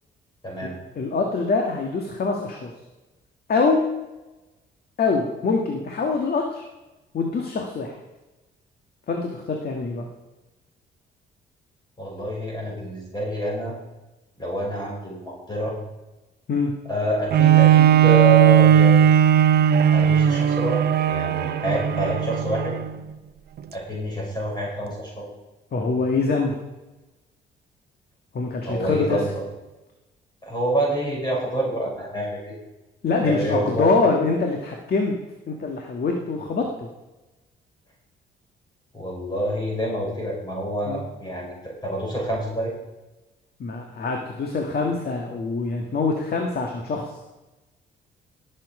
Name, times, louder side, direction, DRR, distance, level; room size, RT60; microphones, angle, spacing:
voice 1, 0.4-0.8 12.0-13.7 14.4-15.7 16.9-19.2 19.9-20.8 21.1-22.8 23.7-25.2 28.7-29.3 30.4-32.5 33.2-33.9 38.9-42.7, right 1 dB, 20° left, -2 dB, 5.3 m, -27 dB
voice 2, 1.0-2.7 3.5-3.8 5.0-6.7 7.1-8.0 9.1-10.1 16.5-16.7 25.7-26.6 28.3-29.2 33.0-35.2 35.5-36.9 40.9-41.1 43.6-47.2, left 4 dB, 50° left, 2 dB, 1.8 m, -24 dB
Bowed string instrument, 17.3-22.9 23.6-23.7, right 9 dB, 55° right, 0.7 m, -17 dB
17.5 x 7.6 x 4.9 m, 1.1 s
cardioid pair, 85°, 20 cm